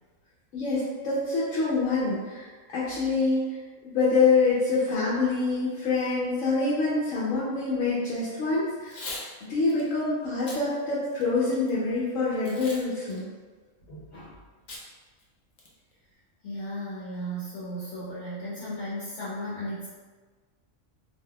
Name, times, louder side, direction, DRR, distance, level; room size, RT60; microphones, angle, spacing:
voice 1, 0.5-3.6 3.9-9.2 9.5-13.3, left 3 dB, 90° left, -7 dB, 1.1 m, -26 dB
Packing tape duct tape / Tearing, 8.8-9.3 9.7-9.8 10.3-10.6 11.1-11.7 12.4-12.8 13.1-13.2 14.7-14.8 15.2-15.3 15.6-15.9, left 2 dB, 50° left, 0.6 m, -39 dB
voice 2, 13.9-14.3 16.4-19.9, equal, 65° left, -9 dB, 1.0 m, -35 dB
3.4 x 2.7 x 2.2 m, 1.4 s
omnidirectional pair, 1.3 m